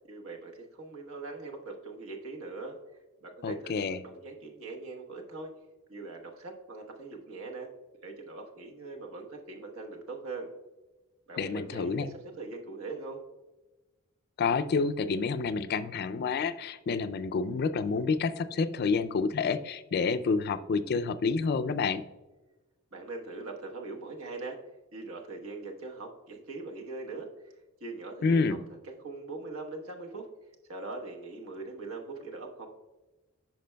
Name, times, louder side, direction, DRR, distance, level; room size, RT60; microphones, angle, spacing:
voice 1, 0.1-2.8 3.2-5.5 5.9-7.7 8.0-10.5 11.3-12.1 12.4-13.2 22.9-24.6 24.9-27.3 27.8-28.6 29.0-30.3 30.7-32.7, right 3 dB, 75° right, 1 dB, 1.1 m, -41 dB
voice 2, 3.4-4.0 11.4-12.1 14.4-22.0 28.2-28.6, left 4 dB, 45° left, 12 dB, 0.3 m, -28 dB
10.0 x 5.9 x 2.2 m, 1.1 s
head